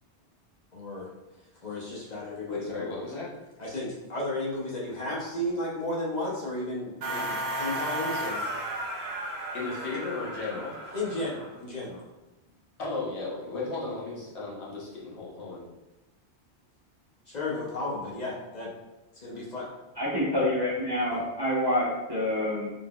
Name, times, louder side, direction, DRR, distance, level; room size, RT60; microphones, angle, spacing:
voice 1, 0.7-1.1 1.6-2.9 3.6-8.5 10.9-12.1 17.3-18.7 19.1-19.7 21.1-21.2, left 1 dB, 45° left, -5 dB, 0.8 m, -34 dB
voice 2, 2.5-3.3 9.5-10.9 12.8-15.7, left 3 dB, 75° left, -5 dB, 1.3 m, -35 dB
sound 1, 7.0-11.5, right 1 dB, 65° right, 1.0 m, -34 dB
voice 3, 20.0-22.7, left 1 dB, 25° right, -7 dB, 0.8 m, -27 dB
3.8 x 3.5 x 2.3 m, 1.0 s
omnidirectional pair, 1.1 m